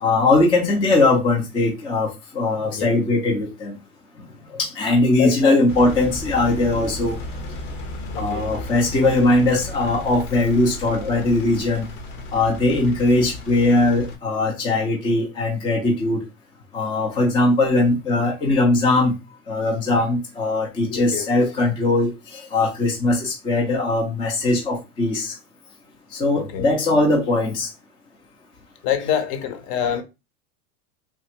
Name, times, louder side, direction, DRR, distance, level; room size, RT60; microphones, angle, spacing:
voice 1, 0.0-2.1 2.3-3.8 4.5-7.1 8.2-11.8 12.3-16.2 16.7-19.1 19.5-25.3 26.2-27.7, left 2 dB, 10° left, 0.3 m, -20 dB
voice 2, 2.5-3.0 5.2-5.6 8.1-8.5 12.9-13.0 20.9-21.5 26.3-26.7 28.8-30.0, left 9 dB, 40° left, 0.7 m, -26 dB
Engine, 5.7-14.2, left 2 dB, 80° left, 1.2 m, -34 dB
3.3 x 2.4 x 2.8 m
supercardioid pair, 130°, 45 cm